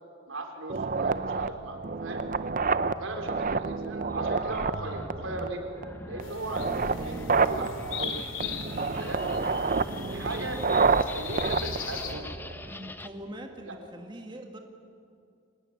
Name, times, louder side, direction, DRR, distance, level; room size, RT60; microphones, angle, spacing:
voice 1, 0.3-2.2 3.0-5.6 6.1-8.2 8.7-9.4 10.0-12.3 13.6-13.8, right 2 dB, 80° right, 3 dB, 3.8 m, -38 dB
sound 1, 0.7-12.7, right 4 dB, 45° right, 0.7 m, -29 dB
sound 2, 4.1-13.1, left 1 dB, 10° left, 0.9 m, -43 dB
sound 3, 6.2-12.1, left 6 dB, 75° left, 2.7 m, -39 dB
voice 2, 12.6-14.6, right 1 dB, 25° right, 3 dB, 1.7 m, -43 dB
25.5 x 18.5 x 9.8 m, 2.4 s
head